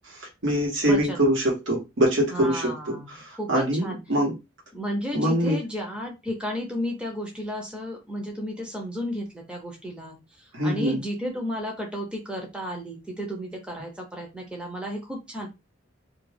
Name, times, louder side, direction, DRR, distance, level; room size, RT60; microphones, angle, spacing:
voice 1, 0.1-2.9 3.2-4.3 5.1-5.6 10.5-11.0, equal, 70° right, -2 dB, 1.0 m, -24 dB
voice 2, 0.8-1.2 2.3-4.0 4.7-15.5, equal, 5° right, 0 dB, 0.5 m, -33 dB
2.3 x 2.3 x 3.2 m, 0.24 s
head